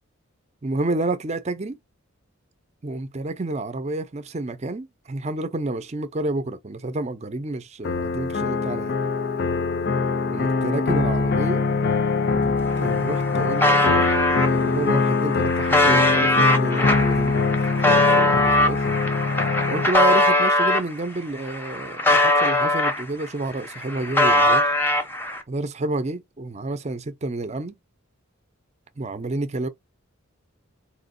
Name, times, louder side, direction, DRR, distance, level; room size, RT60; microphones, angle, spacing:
voice 1, 0.6-1.8 2.8-9.0 10.3-11.7 12.3-17.6 17.9-18.8 19.7-24.7 25.5-27.8 29.0-29.7, right 2 dB, 30° right, 0.5 m, -29 dB
sound 1, 7.8-19.9, left 4 dB, 50° left, 0.5 m, -23 dB
sound 2, 12.6-12.7 12.9-14.5 15.1-20.9 21.4-23.3 23.6-25.4, left 1 dB, 10° left, 0.7 m, -21 dB
4.4 x 2.9 x 2.6 m
head